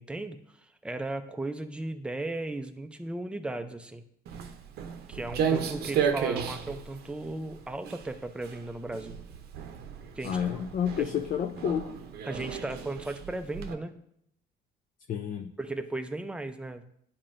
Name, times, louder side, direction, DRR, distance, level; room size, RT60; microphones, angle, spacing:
voice 1, 0.0-4.0 5.1-9.2 10.2-10.4 11.0-11.1 12.3-13.9 15.6-16.9, right 2 dB, 5° right, 7 dB, 0.5 m, -36 dB
Walk footsteps, 4.3-13.7, right 7 dB, 70° right, 0.7 m, -34 dB
voice 2, 10.2-11.9 15.1-15.5, left 8 dB, 50° left, 6 dB, 0.5 m, -30 dB
10.5 x 4.4 x 2.5 m, 0.70 s
cardioid pair, 110°, 17 cm